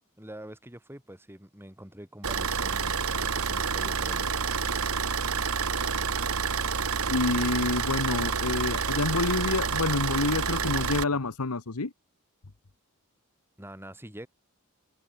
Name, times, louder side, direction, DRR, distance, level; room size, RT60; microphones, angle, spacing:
voice 1, 0.2-4.3 13.6-14.3, right 1 dB, 10° right, 4.6 m, -45 dB
Car / Idling, 2.2-11.0, right 5 dB, 75° right, 1.9 m, -28 dB
voice 2, 7.1-11.9, left 3 dB, 85° left, 1.2 m, -28 dB
head